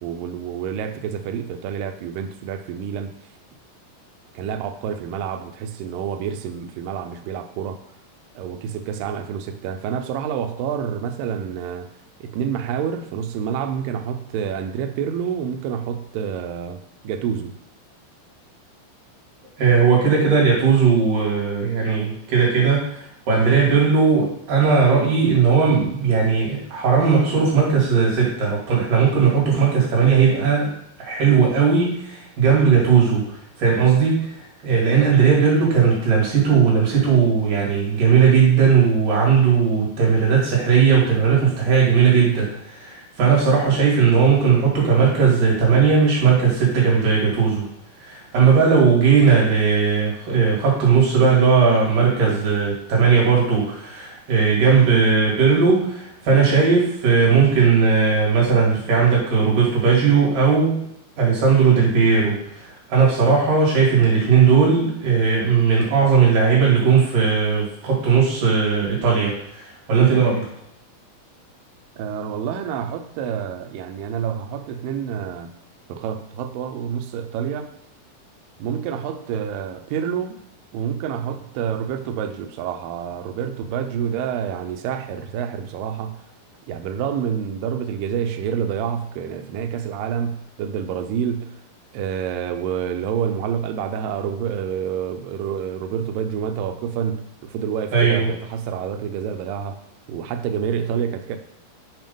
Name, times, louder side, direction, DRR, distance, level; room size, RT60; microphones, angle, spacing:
voice 1, 0.0-3.1 4.4-7.8 8.4-11.9 12.2-17.6 72.0-75.6 75.9-77.7 78.6-80.4 80.7-86.2 86.7-91.6 91.9-99.8 100.1-101.4, right 8 dB, 90° right, 6 dB, 2.0 m, -28 dB
voice 2, 19.6-34.4 34.6-47.7 48.0-60.9 61.2-70.5 97.9-98.3, right 6 dB, 60° right, -4 dB, 3.2 m, -17 dB
7.3 x 2.8 x 5.2 m, 0.72 s
omnidirectional pair, 4.7 m